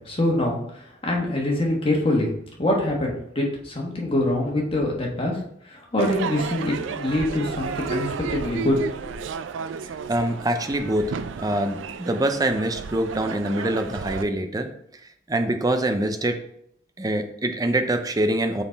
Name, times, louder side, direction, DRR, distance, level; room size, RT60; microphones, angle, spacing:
voice 1, 0.0-2.3 2.6-5.4 5.7-8.8 9.0-9.2, left 1 dB, 30° left, -2 dB, 1.4 m, -24 dB
Crowd / Fireworks, 6.0-14.2, right 5 dB, 80° right, 0.4 m, -33 dB
voice 2, 10.1-11.1 11.4-14.7 15.3-16.3 17.0-18.6, right 1 dB, 20° right, 7 dB, 0.5 m, -24 dB
6.0 x 3.9 x 4.0 m, 0.71 s
head